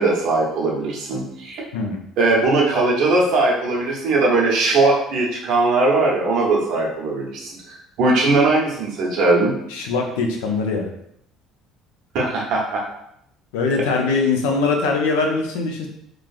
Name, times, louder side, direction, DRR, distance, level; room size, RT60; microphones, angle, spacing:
voice 1, 0.0-1.6 2.2-7.5 8.0-9.5 12.1-12.8, right 2 dB, 65° right, -2 dB, 0.9 m, -19 dB
voice 2, 9.7-10.9 13.5-15.9, left 4 dB, 80° left, 2 dB, 0.5 m, -22 dB
3.1 x 2.4 x 2.4 m, 0.74 s
hypercardioid pair, 65°, 0 cm